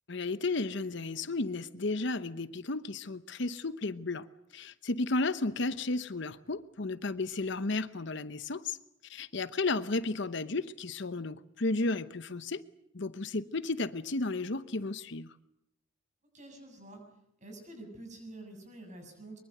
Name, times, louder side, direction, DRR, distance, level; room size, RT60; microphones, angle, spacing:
voice 1, 0.1-4.3 4.5-8.8 9.1-12.6 12.9-15.3, left 3 dB, 60° left, 13 dB, 0.9 m, -33 dB
voice 2, 16.3-17.0 17.4-19.4, right 2 dB, 40° right, 4 dB, 7.6 m, -47 dB
24.0 x 23.0 x 7.9 m, 0.80 s
head